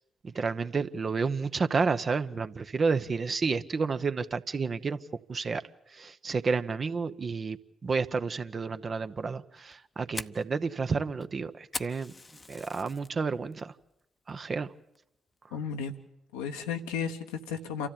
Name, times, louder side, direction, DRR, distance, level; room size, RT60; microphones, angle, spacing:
voice 1, 0.2-5.0 5.3-5.6 5.9-12.1 12.5-13.7 14.3-14.7, right 4 dB, 45° right, 0.9 m, -30 dB
Fire, 9.6-13.1 13.5-13.9 14.3-14.4 15.0-15.3, left 3 dB, 30° left, 0.8 m, -41 dB
voice 2, 15.5-15.9 16.3-17.9, left 6 dB, 85° left, 1.1 m, -34 dB
28.0 x 13.5 x 8.9 m
hypercardioid pair, 40°, 0 cm